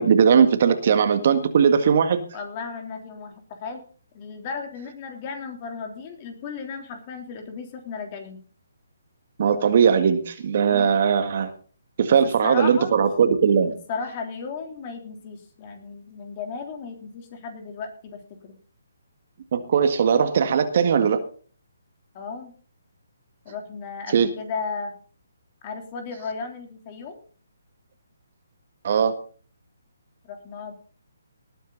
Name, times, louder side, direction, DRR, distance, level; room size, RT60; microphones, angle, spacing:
voice 1, 0.0-2.2 9.4-11.5 12.0-13.7 19.5-21.2 24.1-24.3 28.8-29.1, right 7 dB, 50° right, 9 dB, 1.8 m, -19 dB
voice 2, 2.3-3.8 4.1-8.4 10.7-10.9 12.1-12.9 13.6-18.5 22.1-22.5 23.5-24.9 25.6-27.2 30.2-30.7, left 5 dB, 35° left, 4 dB, 3.3 m, -35 dB
19.0 x 9.2 x 4.0 m, 0.41 s
figure-of-eight pair, 145°, 0 cm